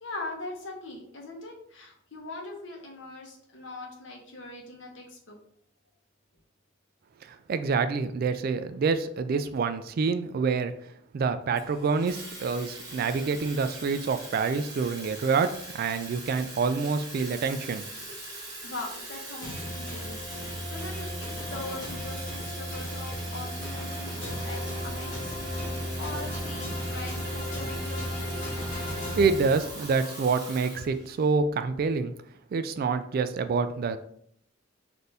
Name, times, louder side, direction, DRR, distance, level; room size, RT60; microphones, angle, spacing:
voice 1, 0.0-5.3 18.6-20.3 20.7-28.5, left 2 dB, 65° left, 0 dB, 1.0 m, -41 dB
voice 2, 7.2-10.7 11.1-17.8 28.9-32.1 32.5-34.0, right 4 dB, 50° right, 10 dB, 0.3 m, -27 dB
Water tap faucet / Fill (with liquid), 11.5-31.3, right 2 dB, 20° right, 1.1 m, -42 dB
sound 1, 19.4-30.0, equal, 25° left, 1.5 m, -35 dB
4.2 x 2.6 x 3.4 m, 0.67 s
head